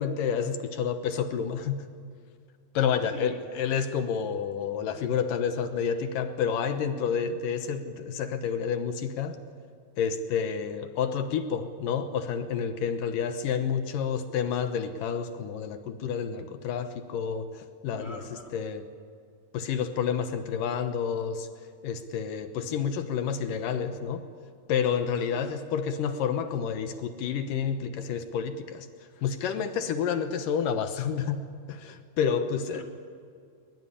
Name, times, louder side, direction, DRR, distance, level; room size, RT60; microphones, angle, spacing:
voice 1, 0.0-1.8 2.7-9.4 10.0-18.2 18.5-18.9 19.5-21.5 21.8-24.2 24.7-28.9 29.2-31.4 31.7-32.8, left 7 dB, 70° left, 9 dB, 2.6 m, -29 dB
voice 2, 18.0-18.5 25.2-25.5 32.7-32.8, right 2 dB, 20° right, 4 dB, 2.2 m, -43 dB
22.0 x 22.0 x 10.0 m, 2.3 s
omnidirectional pair, 4.1 m